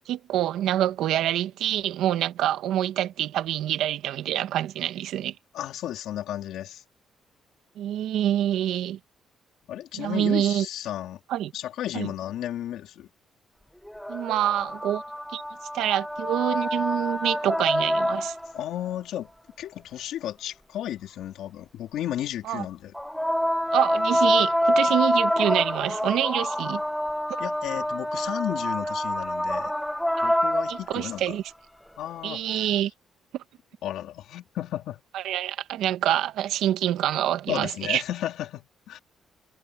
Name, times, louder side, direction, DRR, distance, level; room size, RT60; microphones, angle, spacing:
voice 1, 0.1-5.3 7.8-9.0 10.0-10.6 11.3-11.5 11.9-12.1 14.1-15.0 15.3-15.4 15.7-18.3 22.5-22.6 23.7-26.8 30.2-30.4 30.7-31.4 32.2-32.9 33.3-33.4 35.1-38.0, right 12 dB, 85° right, 1.3 m, -26 dB
voice 2, 5.5-6.8 9.7-11.2 11.5-13.1 18.5-19.3 19.6-22.9 27.4-29.7 30.2-31.4 32.0-32.7 33.8-35.0 37.5-39.0, left 12 dB, 80° left, 3.1 m, -33 dB
sound 1, 13.8-18.6 22.9-31.2 32.5-32.6, equal, 5° left, 1.0 m, -26 dB
cardioid pair, 90°, 0 cm